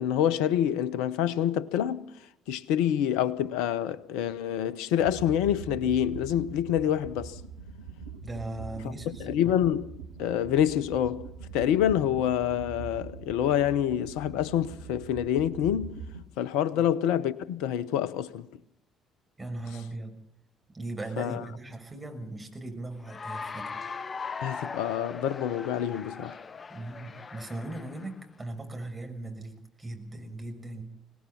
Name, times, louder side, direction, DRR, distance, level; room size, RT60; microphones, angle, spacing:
voice 1, 0.0-2.0 2.5-7.4 9.2-9.9 10.2-11.2 11.5-15.9 16.4-18.5 21.2-21.4 24.4-26.4, left 10 dB, 70° left, 0.9 m, -27 dB
sound 1, 5.0-16.2, right 5 dB, 85° right, 1.4 m, -43 dB
voice 2, 8.2-9.3 16.7-16.9 19.4-20.1 20.7-23.8 26.7-30.8, right 2 dB, 20° right, 6.4 m, -38 dB
Cheering / Applause, 23.0-28.2, left 5 dB, 35° left, 0.7 m, -39 dB
25.0 x 18.5 x 5.8 m
figure-of-eight pair, 45°, 0 cm